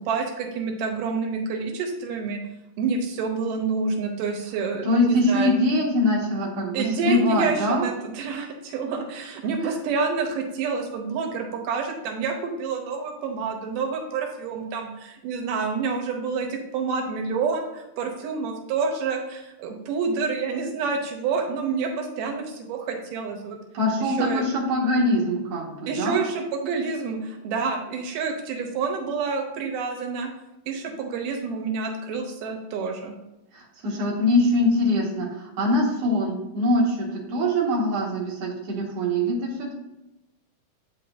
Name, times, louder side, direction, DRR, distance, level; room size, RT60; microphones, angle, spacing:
voice 1, 0.0-2.4 2.8-5.5 6.7-23.6 24.0-24.4 25.9-30.3 30.7-33.1, right 4 dB, 90° right, 3 dB, 2.3 m, -28 dB
voice 2, 4.8-7.9 9.6-9.7 23.7-26.2 33.5-39.7, left 1 dB, 55° right, -4 dB, 2.3 m, -23 dB
8.6 x 5.3 x 2.5 m, 0.92 s
omnidirectional pair, 3.7 m